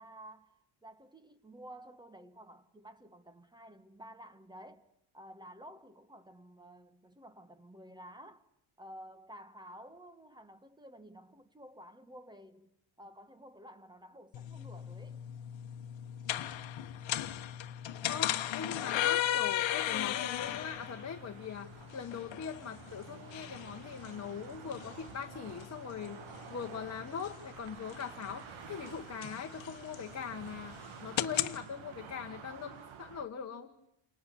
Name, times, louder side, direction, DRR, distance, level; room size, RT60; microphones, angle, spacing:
voice 1, 0.0-4.9 5.1-8.5 8.8-12.7 13.0-15.2, equal, 10° right, 1.3 m, -52 dB
sound 1, 14.3-31.6, left 12 dB, 60° left, 1.3 m, -37 dB
voice 2, 18.1-26.2 26.5-33.7, left 7 dB, 30° left, 1.5 m, -41 dB
sound 2, 19.9-33.2, right 7 dB, 70° right, 1.9 m, -51 dB
29.5 x 28.0 x 7.1 m
cardioid pair, 150°, 50 cm